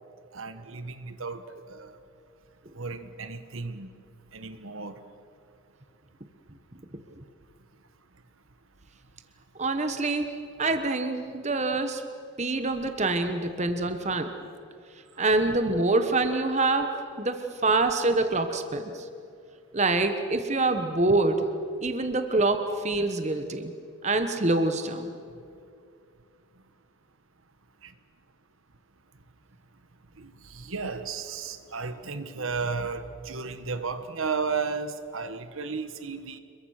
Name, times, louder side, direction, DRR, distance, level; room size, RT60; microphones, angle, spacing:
voice 1, 0.3-2.0 2.7-3.9 4.3-5.0 15.2-15.3 27.8-27.9 30.2-36.4, right 4 dB, 75° right, 10 dB, 1.3 m, -34 dB
voice 2, 9.6-10.3 10.6-12.0 12.4-14.3 15.2-19.1 19.7-21.5 21.8-23.7 24.0-25.1, right 2 dB, 30° right, 7 dB, 1.2 m, -25 dB
28.0 x 22.5 x 6.6 m, 2.4 s
head